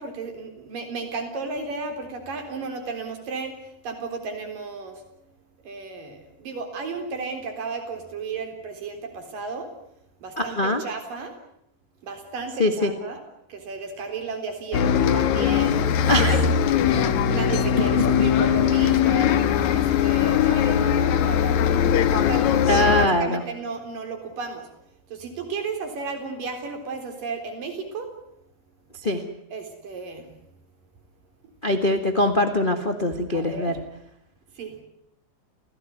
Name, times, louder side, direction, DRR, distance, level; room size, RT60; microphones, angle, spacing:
voice 1, 0.0-3.6 3.8-5.0 5.6-9.7 10.2-11.3 12.0-13.2 13.5-15.8 16.2-19.3 19.7-21.7 22.1-24.7 25.1-28.1 29.5-30.3 33.3-33.8 34.6-34.8, right 4 dB, 75° right, 5 dB, 5.4 m, -33 dB
voice 2, 10.4-10.8 12.6-12.9 16.1-16.4 22.7-23.4 29.0-29.2 31.6-33.8, left 1 dB, 25° left, 6 dB, 1.3 m, -22 dB
Bus, 14.7-23.1, left 8 dB, 65° left, 2.4 m, -20 dB
29.0 x 17.0 x 9.4 m, 0.76 s
omnidirectional pair, 3.9 m